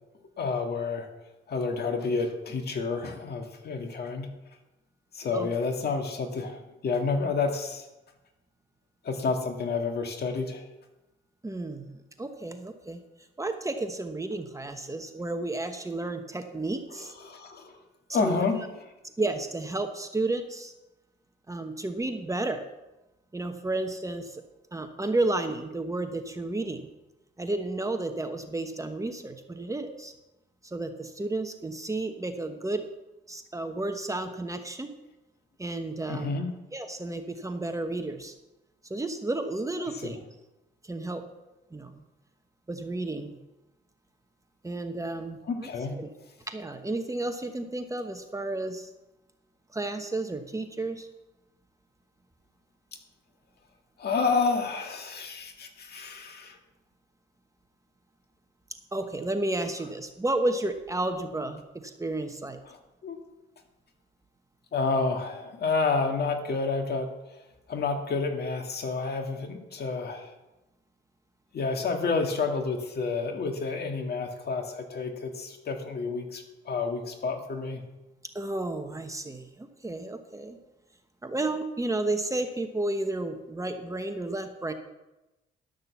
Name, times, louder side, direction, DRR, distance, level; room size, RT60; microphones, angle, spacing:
voice 1, 0.4-1.1 1.5-4.3 5.1-7.9 9.0-10.6 16.9-17.8 18.1-18.6 36.1-36.5 40.0-40.1 45.5-46.0 54.0-56.6 62.7-62.8 63.0-63.2 64.7-67.1 67.7-70.3 71.5-77.8, left 4 dB, 55° left, 4 dB, 1.9 m, -29 dB
voice 2, 11.4-13.0 13.4-17.1 18.2-18.5 19.2-20.7 21.5-22.6 23.3-24.4 24.7-26.9 27.4-30.1 30.6-32.9 33.3-34.9 35.6-36.4 36.7-38.3 38.9-40.2 40.8-41.2 41.7-41.9 42.7-43.4 44.6-46.1 46.5-48.9 49.7-51.1 58.9-62.6 78.3-80.6 81.2-84.7, right 2 dB, 15° right, 7 dB, 1.0 m, -32 dB
12.0 x 6.6 x 7.1 m, 1.0 s
cardioid pair, 90°, 20 cm